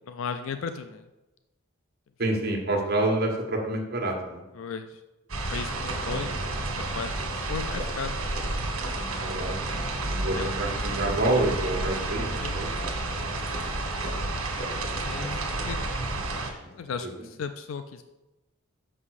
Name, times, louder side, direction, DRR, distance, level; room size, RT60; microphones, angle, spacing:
voice 1, 0.1-1.0 4.6-5.0 5.3-6.3 6.8-8.3 10.3-10.5 12.4-13.5 15.0-16.0 16.7-18.0, left 5 dB, 70° left, 9 dB, 0.4 m, -36 dB
voice 2, 2.2-4.4 8.9-9.7 10.0-12.8 14.5-15.4 16.6-16.7 17.0-17.3, right 2 dB, 45° right, 1 dB, 1.4 m, -29 dB
sound 1, 5.3-16.5, right 2 dB, 85° right, 1.5 m, -30 dB
6.0 x 5.5 x 6.4 m, 1.1 s
head